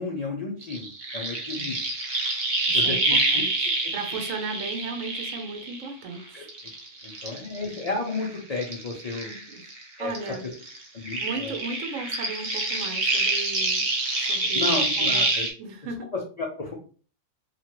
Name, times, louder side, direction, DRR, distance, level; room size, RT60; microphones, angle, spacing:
voice 1, 0.0-1.8 2.7-3.2 3.8-4.0 6.3-6.5 7.0-9.3 10.0-10.1 10.9-11.5 14.5-15.5 16.4-16.7, left 3 dB, 70° left, -1 dB, 0.3 m, -32 dB
sound 1, 0.6-6.1 6.5-9.8 10.1-15.5, right 2 dB, 45° right, 0.7 m, -27 dB
voice 2, 2.7-3.0 3.3-6.5 9.2-9.6 10.0-10.5 11.2-15.2 15.6-16.1, right 3 dB, 75° right, 5 dB, 1.0 m, -36 dB
2.9 x 2.4 x 2.9 m, 0.41 s
omnidirectional pair, 1.4 m